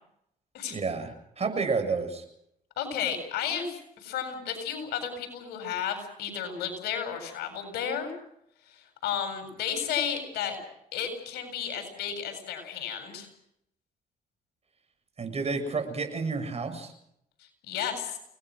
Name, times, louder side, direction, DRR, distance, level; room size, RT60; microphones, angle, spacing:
voice 1, 0.7-2.2 15.2-16.9, right 4 dB, 40° right, 7 dB, 7.5 m, -30 dB
voice 2, 2.8-8.1 8.7-10.6 10.9-13.3 17.4-18.2, left 8 dB, 80° left, 6 dB, 7.7 m, -33 dB
29.5 x 19.5 x 6.4 m, 0.76 s
supercardioid pair, 60°, 16 cm